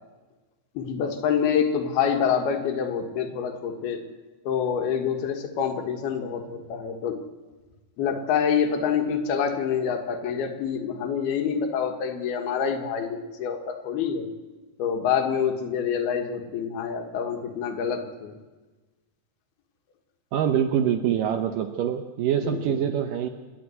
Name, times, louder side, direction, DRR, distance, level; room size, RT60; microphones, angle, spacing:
voice 1, 0.7-4.0 4.4-7.2 8.0-14.3 14.8-18.3 22.3-22.8, left 7 dB, 75° left, 6 dB, 3.4 m, -26 dB
voice 2, 20.3-23.3, right 9 dB, 75° right, 7 dB, 2.0 m, -25 dB
27.5 x 11.0 x 9.5 m, 1.3 s
omnidirectional pair, 4.7 m